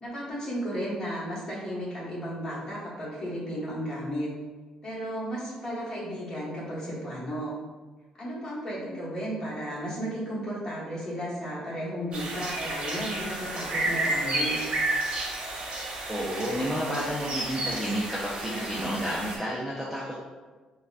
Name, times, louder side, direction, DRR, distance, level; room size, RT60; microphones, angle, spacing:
voice 1, 0.0-4.3 4.8-7.6 8.2-14.6, equal, 35° left, -7 dB, 1.2 m, -34 dB
sound 1, 12.1-19.4, right 2 dB, 55° right, 0.7 m, -31 dB
voice 2, 16.1-20.1, equal, 5° left, -8 dB, 0.5 m, -31 dB
3.8 x 2.2 x 2.4 m, 1.3 s
cardioid pair, 125°, 2 cm